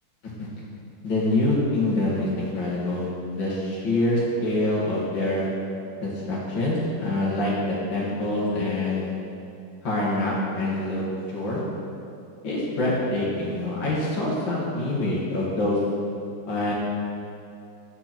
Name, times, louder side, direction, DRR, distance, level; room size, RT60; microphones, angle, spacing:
voice 1, 1.0-5.5 6.0-9.1 9.8-11.0 11.3-11.6 12.4-15.8 16.5-16.7, left 1 dB, 60° left, -6 dB, 2.6 m, -25 dB
12.0 x 8.7 x 4.5 m, 2.6 s
omnidirectional pair, 2.3 m